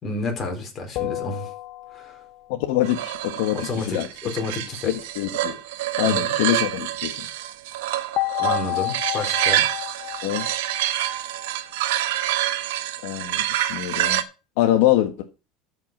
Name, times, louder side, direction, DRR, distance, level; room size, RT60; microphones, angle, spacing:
voice 1, 0.0-1.5 1.9-2.2 3.5-4.9 6.0-6.3 8.4-9.7, left 3 dB, 25° left, 4.3 m, -30 dB
sound 1, 0.9-2.5 8.2-11.5, left 20 dB, 50° left, 0.7 m, -30 dB
voice 2, 2.5-3.6 3.8-4.1 4.8-5.6 6.0-7.3 10.2-10.5 13.0-14.2 14.6-15.2, left 13 dB, 75° left, 1.4 m, -24 dB
sound 2, 2.8-14.2, right 13 dB, 85° right, 1.2 m, -27 dB
13.0 x 6.0 x 6.2 m
supercardioid pair, 150°, 0 cm